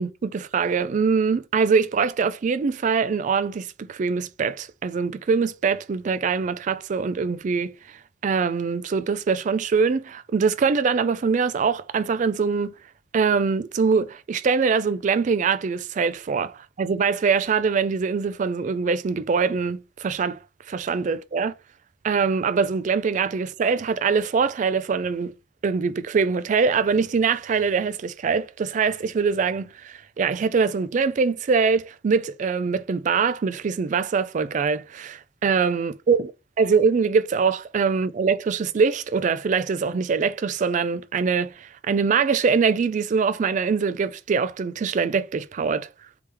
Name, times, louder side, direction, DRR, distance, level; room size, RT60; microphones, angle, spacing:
voice 1, 0.0-12.7 13.1-20.4 20.7-21.5 22.0-25.3 25.6-36.3 36.6-45.9, right 5 dB, 40° right, 0.3 m, -23 dB
3.3 x 2.9 x 3.3 m
head